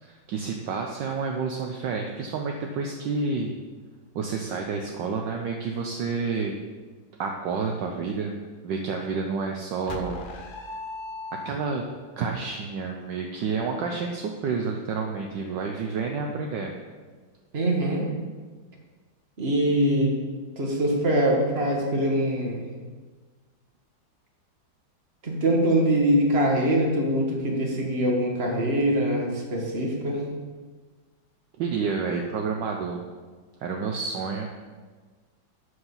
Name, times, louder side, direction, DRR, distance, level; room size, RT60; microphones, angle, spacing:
voice 1, 0.0-3.5 4.1-6.5 7.2-8.3 8.6-10.2 11.4-11.8 12.2-16.7 31.6-33.0 33.6-34.5, right 5 dB, 65° right, 2 dB, 1.3 m, -29 dB
sound 1, 9.9-12.0, left 2 dB, 75° left, 0.4 m, -37 dB
voice 2, 17.5-18.1 19.4-20.1 20.6-22.6 25.2-30.2, right 1 dB, 30° right, -1 dB, 1.9 m, -23 dB
13.0 x 4.9 x 5.5 m, 1.4 s
omnidirectional pair, 2.2 m